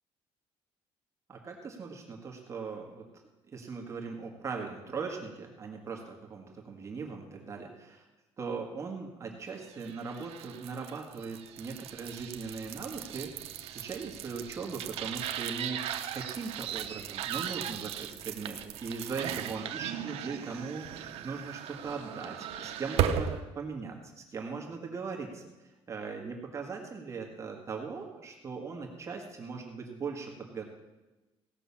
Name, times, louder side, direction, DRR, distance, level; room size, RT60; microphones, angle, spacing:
voice 1, 1.3-3.1 3.5-8.0 8.4-13.3 13.6-15.8 16.1-30.7, right 5 dB, 30° right, 0 dB, 1.8 m, -39 dB
sound 1, 9.7-23.4, right 10 dB, 70° right, 0.9 m, -37 dB
17.0 x 6.1 x 7.2 m, 1.1 s
cardioid pair, 165°, 10 cm